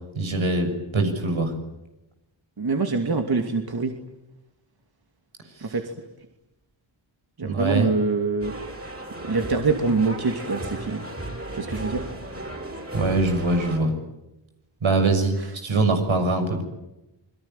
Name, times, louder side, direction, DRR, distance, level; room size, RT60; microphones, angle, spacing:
voice 1, 0.1-1.5 7.4-7.9 12.9-13.9 14.8-16.6, right 3 dB, 85° right, 5 dB, 6.8 m, -23 dB
voice 2, 2.6-3.9 5.6-5.9 7.4-8.5 9.3-11.1 11.5-12.1, right 3 dB, 55° right, 4 dB, 2.8 m, -24 dB
sound 1, 8.4-13.8, right 1 dB, 30° right, 7.5 m, -35 dB
28.5 x 22.5 x 9.2 m, 0.96 s
wide cardioid pair, 75°, 46 cm